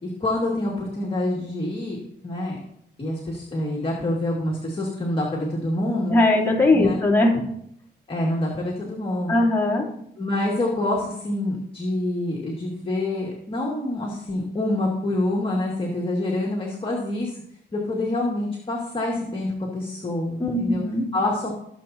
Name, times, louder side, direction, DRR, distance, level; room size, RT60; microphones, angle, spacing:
voice 1, 0.0-2.6 3.0-6.2 6.7-7.0 8.1-9.4 10.2-17.4 17.7-19.5 19.7-20.8 21.1-21.6, left 1 dB, 30° left, -4 dB, 2.2 m, -26 dB
voice 2, 6.1-7.4 9.3-9.9 20.4-21.1, left 2 dB, 15° left, -3 dB, 3.0 m, -20 dB
18.5 x 7.2 x 2.9 m, 0.73 s
cardioid pair, 95°, 18 cm